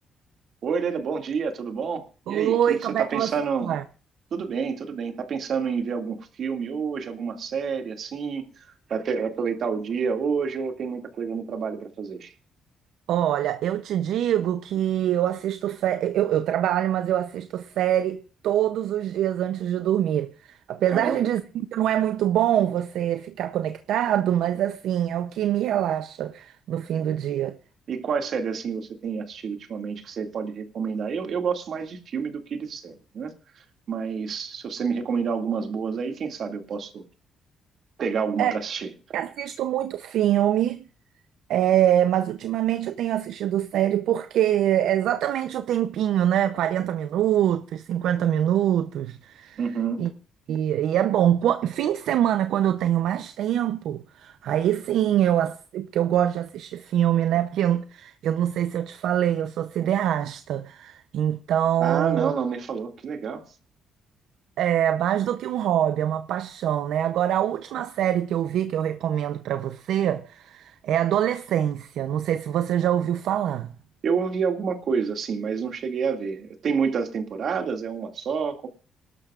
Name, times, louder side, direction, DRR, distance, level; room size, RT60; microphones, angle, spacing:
voice 1, 0.6-3.7 4.3-12.3 20.9-21.3 27.9-37.0 38.0-38.9 49.6-50.1 61.8-63.5 74.0-78.7, right 6 dB, 60° right, 2.1 m, -29 dB
voice 2, 2.3-3.3 3.7-3.8 13.1-21.4 21.7-27.6 38.4-38.5 39.1-40.8 41.5-49.6 50.0-50.1 50.5-62.3 64.6-73.7, right 11 dB, 80° right, 0.6 m, -24 dB
26.5 x 12.0 x 2.4 m
cardioid pair, 90°, 0 cm